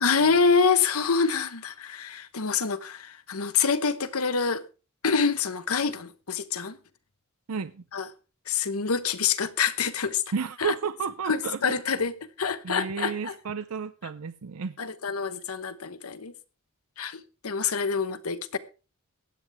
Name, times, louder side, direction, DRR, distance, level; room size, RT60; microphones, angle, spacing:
voice 1, 0.0-4.6 5.0-6.8 7.9-8.1 8.5-10.2 10.6-10.7 11.3-13.3 14.8-16.3 17.0-18.6, left 5 dB, 85° left, 1.1 m, -26 dB
voice 2, 7.5-7.8 10.3-11.8 12.6-14.8, right 6 dB, 90° right, 0.6 m, -32 dB
15.5 x 10.0 x 3.5 m
head